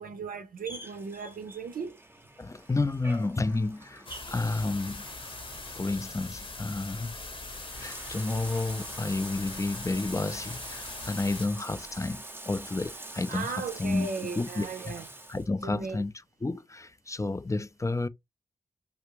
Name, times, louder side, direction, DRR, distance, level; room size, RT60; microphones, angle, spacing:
voice 1, 0.0-2.0 13.3-15.1 15.6-16.0, right 5 dB, 75° right, 0.5 m, -37 dB
Bathtub (filling or washing), 0.6-15.5, right 1 dB, 15° right, 0.7 m, -45 dB
voice 2, 2.4-5.0 5.7-7.1 7.8-14.1 14.3-14.9 15.3-16.1 16.4-18.1, left 2 dB, 20° left, 0.4 m, -31 dB
sound 1, 4.1-11.5, left 3 dB, 35° left, 0.9 m, -42 dB
3.4 x 2.4 x 3.0 m
cardioid pair, 45°, 15 cm